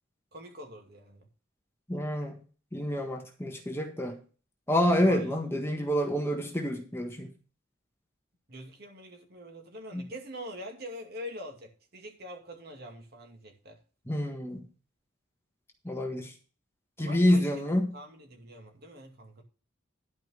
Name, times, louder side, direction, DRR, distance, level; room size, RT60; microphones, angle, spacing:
voice 1, 0.3-1.3 5.0-5.5 8.5-13.8 17.0-17.6 17.9-19.4, equal, 55° right, 2.5 m, -44 dB
voice 2, 1.9-2.4 2.7-4.2 4.7-7.3 9.9-10.1 14.1-14.7 15.8-16.3 17.0-17.9, left 1 dB, 10° left, 1.6 m, -28 dB
11.5 x 5.3 x 6.4 m
head